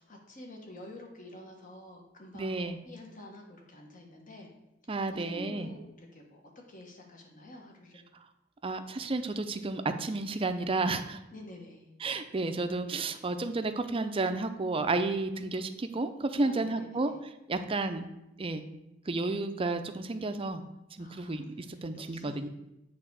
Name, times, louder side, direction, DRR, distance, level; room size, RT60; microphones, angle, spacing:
voice 1, 0.0-4.5 5.1-6.4 6.7-8.0 11.3-11.9 16.4-17.2 17.5-17.7 21.0-22.5, left 1 dB, 45° left, 1 dB, 1.4 m, -49 dB
voice 2, 2.3-2.8 4.9-5.7 8.6-11.2 12.0-17.1 17.5-18.1 18.4-18.6 19.1-20.6 21.0-22.5, right 3 dB, 30° right, 8 dB, 0.5 m, -32 dB
7.9 x 3.6 x 6.2 m, 0.90 s
head